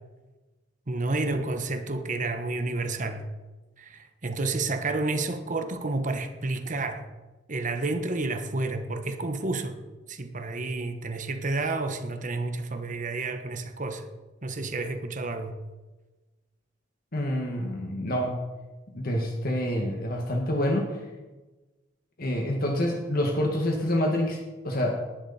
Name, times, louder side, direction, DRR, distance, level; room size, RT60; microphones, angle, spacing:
voice 1, 0.9-3.3 3.8-7.1 7.5-9.8 10.1-14.0 14.4-15.5, right 2 dB, 45° right, 1.2 m, -30 dB
voice 2, 17.1-18.4 18.9-21.0 22.2-25.0, left 1 dB, 55° left, 1.9 m, -27 dB
19.0 x 11.0 x 4.3 m
head